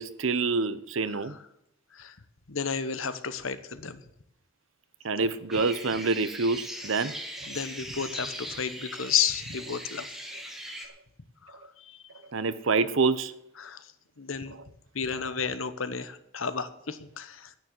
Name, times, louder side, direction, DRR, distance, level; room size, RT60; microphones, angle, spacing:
voice 1, 0.0-1.3 5.0-7.1 12.3-13.3, right 4 dB, 75° right, 14 dB, 0.9 m, -26 dB
voice 2, 2.5-4.0 7.5-10.1 11.4-11.6 11.9-12.0 13.6-13.8 14.2-14.5 14.9-17.5, left 7 dB, 80° left, 12 dB, 1.1 m, -32 dB
sound 1, 5.5-10.9, equal, ahead, 1.6 m, -40 dB
10.5 x 9.7 x 7.7 m, 0.78 s
head